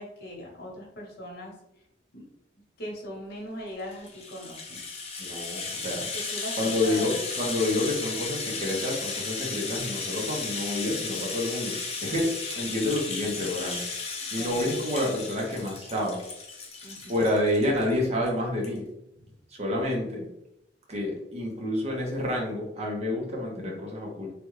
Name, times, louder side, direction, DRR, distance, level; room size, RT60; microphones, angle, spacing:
voice 1, 0.0-1.5 2.1-2.2 2.8-4.8 6.1-7.3 14.4-14.8 16.8-17.2, equal, 60° left, -1 dB, 1.0 m, -40 dB
Rattle (instrument), 3.8-17.9 18.3-18.4 18.6-18.8, left 4 dB, 35° left, 0.6 m, -35 dB
voice 2, 5.2-6.0 6.6-12.3 12.6-13.8 14.3-16.2 17.1-18.9 19.5-20.3 20.9-24.3, left 1 dB, 35° right, -1 dB, 0.8 m, -29 dB
3.4 x 2.3 x 3.1 m, 0.83 s
head